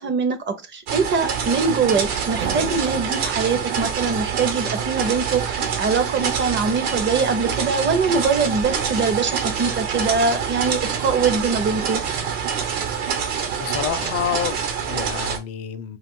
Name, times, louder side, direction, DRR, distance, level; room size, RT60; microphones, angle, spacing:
voice 1, 0.0-12.0, right 5 dB, 30° right, 0.7 m, -23 dB
sound 1, 0.9-15.4, right 7 dB, 65° right, 1.1 m, -26 dB
sound 2, 1.4-12.9, right 5 dB, 90° right, 0.8 m, -40 dB
voice 2, 13.5-16.0, left 10 dB, 45° left, 0.6 m, -28 dB
2.4 x 2.4 x 3.6 m
hypercardioid pair, 85°, 36 cm